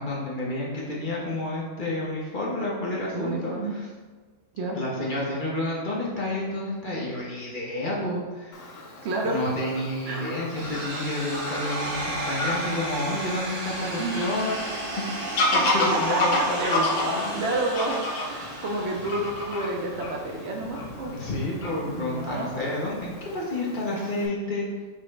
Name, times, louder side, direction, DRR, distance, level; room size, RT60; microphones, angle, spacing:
voice 1, 0.0-3.9 4.7-8.8 9.2-14.6 15.0-15.1 15.5-17.5 21.1-24.9, left 1 dB, 50° left, -5 dB, 0.7 m, -30 dB
voice 2, 3.1-3.7 4.5-4.8 9.0-9.5 10.1-10.3 14.0-14.3 15.5-17.1 17.3-21.2 21.9-22.5, right 2 dB, 65° right, 0 dB, 0.8 m, -30 dB
Fowl / Bird vocalization bird call bird song, 8.5-24.3, left 2 dB, 85° left, 1.0 m, -32 dB
sound 1, 10.5-20.5, right 2 dB, 35° right, 0.7 m, -34 dB
5.4 x 2.0 x 3.2 m, 1.4 s
omnidirectional pair, 1.3 m